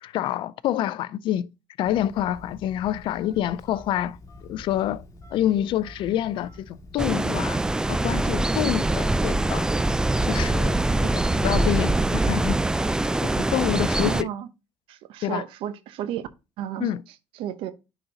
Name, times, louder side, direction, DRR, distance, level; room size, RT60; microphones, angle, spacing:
voice 1, 0.0-1.5 1.8-4.2 4.4-5.0 5.3-7.6 7.9-9.7 10.2-12.6 13.2-14.3 15.2-15.4 16.8-17.0, left 12 dB, 65° left, 0.4 m, -27 dB
Telephone, 1.8-11.5, left 2 dB, 40° left, 2.0 m, -46 dB
sound 1, 7.0-14.2, right 2 dB, 10° right, 0.3 m, -23 dB
voice 2, 14.0-14.5 14.9-16.3 16.6-16.9 17.3-17.7, right 11 dB, 70° right, 0.7 m, -32 dB
9.6 x 4.0 x 2.8 m
supercardioid pair, 85°, 9 cm